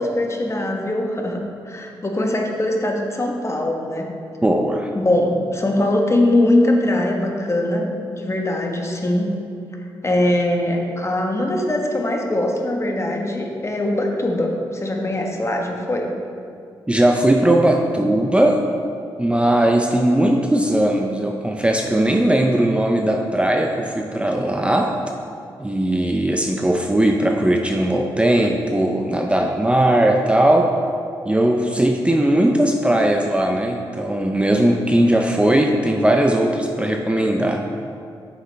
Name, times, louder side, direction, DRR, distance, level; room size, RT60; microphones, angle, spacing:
voice 1, 0.0-4.1 4.9-9.3 10.0-16.1, left 1 dB, 30° left, 1 dB, 1.3 m, -21 dB
voice 2, 4.4-4.9 16.9-18.6 19.2-25.0 25.6-30.7 31.2-37.6, right 1 dB, 10° right, 2 dB, 0.6 m, -18 dB
9.1 x 6.6 x 3.3 m, 2.5 s
supercardioid pair, 45°, 10 cm